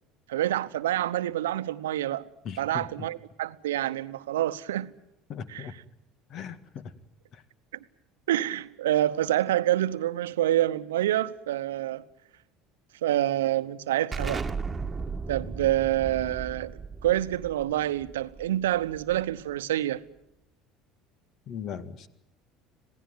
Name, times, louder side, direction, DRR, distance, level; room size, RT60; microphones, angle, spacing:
voice 1, 0.3-2.3 2.6-4.9 5.5-5.6 8.3-12.0 13.0-14.4 15.3-20.0, right 13 dB, 80° right, 0.9 m, -27 dB
voice 2, 2.4-3.1 5.3-5.7 6.3-6.9 7.3-7.4 21.5-22.1, left 7 dB, 50° left, 1.9 m, -38 dB
Explosion, 14.1-19.5, right 4 dB, 20° right, 1.8 m, -36 dB
26.5 x 17.0 x 9.1 m
hypercardioid pair, 70°, 0 cm